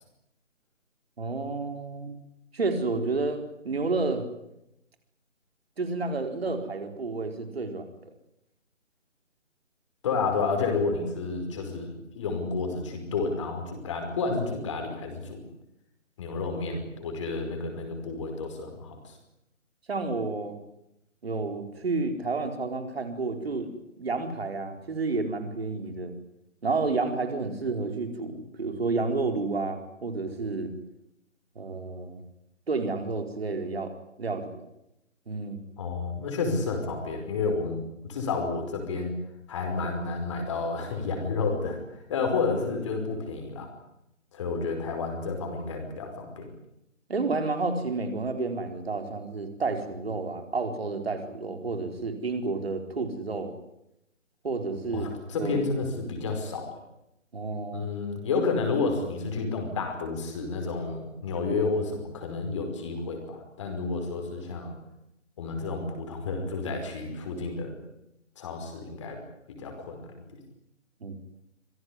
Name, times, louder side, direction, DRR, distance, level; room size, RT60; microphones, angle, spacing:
voice 1, 1.2-2.2 2.5-4.3 5.8-7.9 19.9-20.6 21.2-23.7 24.0-26.1 26.6-30.7 31.6-32.2 32.7-33.9 34.2-34.7 35.3-35.6 47.1-53.6 54.4-55.1 55.4-55.6 57.3-57.9 71.0-71.2, right 3 dB, 50° right, 6 dB, 4.5 m, -30 dB
voice 2, 10.0-15.4 16.2-19.2 35.8-37.8 38.0-39.1 39.5-43.7 44.3-46.5 54.9-56.8 57.7-64.7 65.4-67.8 68.4-69.2 69.5-70.2, left 4 dB, 25° left, 4 dB, 5.2 m, -30 dB
26.0 x 17.5 x 10.0 m, 0.83 s
figure-of-eight pair, 160°, 38 cm